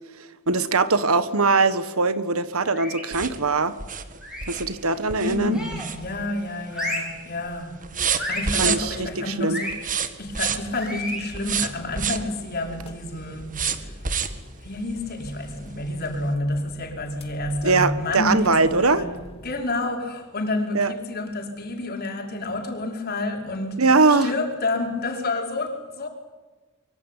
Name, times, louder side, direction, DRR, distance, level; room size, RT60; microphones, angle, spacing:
voice 1, 0.2-3.7 4.5-5.6 8.6-9.6 17.6-19.1 20.7-20.9 23.8-24.3, right 3 dB, 85° right, 13 dB, 1.5 m, -21 dB
sound 1, 2.7-3.2 4.2-4.6 5.5-6.0 6.7-7.2 8.2-8.6 9.5-9.8 10.8-11.3, equal, 5° right, 7.2 m, -32 dB
sound 2, 3.1-6.5 6.8-7.2 7.4-9.1 9.7-10.8 11.3-12.3 13.5-14.5 15.0-15.1 15.5-15.6, right 7 dB, 40° right, 1.8 m, -28 dB
voice 2, 5.2-9.7 10.2-14.0 14.6-19.1 19.4-26.1, left 2 dB, 50° left, 2 dB, 5.1 m, -29 dB
sound 3, 10.2-19.6, equal, 30° left, 2.7 m, -45 dB
24.5 x 24.0 x 9.1 m, 1.2 s
head